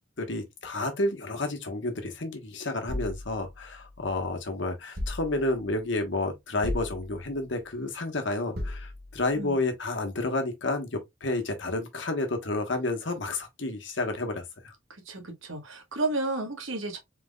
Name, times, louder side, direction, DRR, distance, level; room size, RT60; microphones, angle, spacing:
voice 1, 0.2-14.7, left 2 dB, 65° left, 1.3 m, -30 dB
sound 1, 2.9-4.3 5.0-5.8 6.6-7.5 8.6-9.4, left 1 dB, 50° right, 1.5 m, -37 dB
voice 2, 14.9-17.0, right 2 dB, 80° right, 1.5 m, -32 dB
4.4 x 4.1 x 2.3 m
head